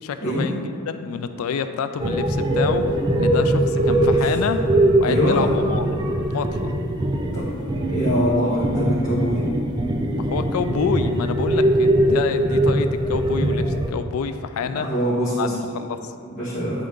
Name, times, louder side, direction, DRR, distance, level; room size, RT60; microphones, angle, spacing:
voice 1, 0.0-4.6 5.0-5.9 6.3-6.5 10.1-14.9 15.4-16.1, left 6 dB, 75° left, 9 dB, 0.3 m, -28 dB
sound 1, 2.0-13.9, right 1 dB, 20° right, 0.4 m, -21 dB
voice 2, 3.9-4.3 5.0-5.5 7.3-7.5 7.9-9.4 14.6-15.5 16.2-16.9, equal, 40° left, -11 dB, 1.4 m, -24 dB
8.9 x 3.7 x 3.6 m, 2.2 s
head